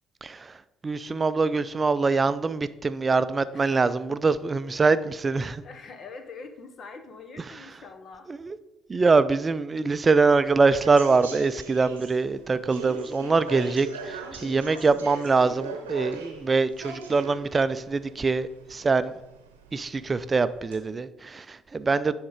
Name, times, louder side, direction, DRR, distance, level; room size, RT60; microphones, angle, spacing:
voice 1, 0.2-5.6 8.3-8.6 8.9-19.2 19.7-22.1, right 4 dB, 30° right, 0.4 m, -24 dB
voice 2, 3.5-3.9 5.6-8.3, left 4 dB, 45° left, 0.8 m, -44 dB
sound 1, 10.1-20.8, right 4 dB, 85° right, 0.8 m, -41 dB
9.9 x 3.6 x 4.7 m
figure-of-eight pair, 50°, 0 cm